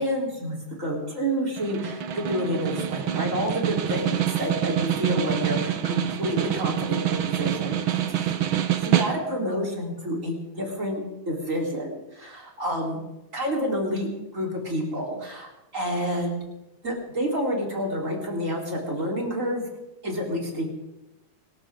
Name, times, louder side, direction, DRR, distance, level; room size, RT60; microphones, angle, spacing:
voice 1, 0.0-7.8 8.1-8.3 8.8-13.0 13.3-16.4 16.8-19.7 20.0-20.7, equal, 25° right, -1 dB, 3.9 m, -29 dB
Snare drum, 1.6-9.5, right 10 dB, 75° right, 1.2 m, -26 dB
25.5 x 14.0 x 3.8 m, 0.95 s
omnidirectional pair, 3.7 m